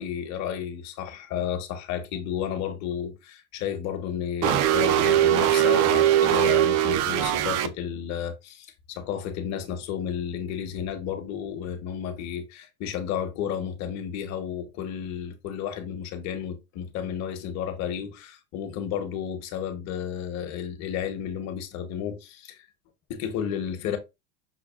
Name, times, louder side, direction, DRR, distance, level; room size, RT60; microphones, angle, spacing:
voice 1, 0.0-22.7 23.1-24.0, left 8 dB, 50° left, 0.9 m, -32 dB
sound 1, 4.4-7.7, right 11 dB, 50° right, 0.4 m, -21 dB
5.8 x 2.2 x 2.3 m
supercardioid pair, 135°, 35 cm